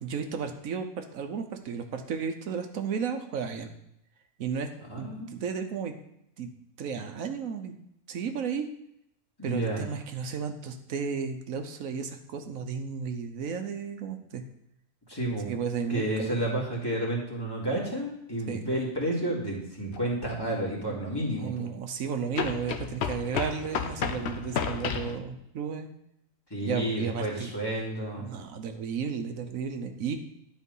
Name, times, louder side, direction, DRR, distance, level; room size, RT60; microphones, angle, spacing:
voice 1, 0.0-3.7 4.4-4.7 5.0-5.9 6.4-6.5 6.8-7.7 8.1-8.7 9.4-14.4 15.4-16.4 18.5-18.6 20.9-21.0 21.4-25.9 26.6-27.5 28.2-30.2, right 6 dB, 85° right, 6 dB, 1.3 m, -33 dB
voice 2, 4.9-5.3 9.4-9.9 15.1-15.5 15.9-21.7 26.5-28.3, right 1 dB, 15° left, -4 dB, 2.4 m, -31 dB
sound 1, 19.9-20.0 22.3-25.2, left 7 dB, 60° left, 0.9 m, -32 dB
10.5 x 4.7 x 5.5 m, 0.78 s
omnidirectional pair, 1.4 m